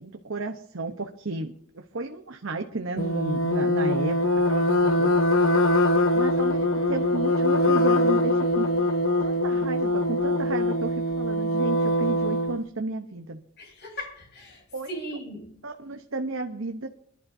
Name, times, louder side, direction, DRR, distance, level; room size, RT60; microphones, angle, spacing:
voice 1, 0.0-5.2 6.2-8.7 9.2-13.4 14.7-14.9 15.6-16.9, right 2 dB, 70° right, 5 dB, 1.0 m, -33 dB
sound 1, 3.0-12.6, left 1 dB, 75° left, 1.1 m, -23 dB
voice 2, 4.8-5.2 13.6-15.5, right 1 dB, 55° left, 1 dB, 6.7 m, -39 dB
26.0 x 11.5 x 2.7 m, 0.65 s
head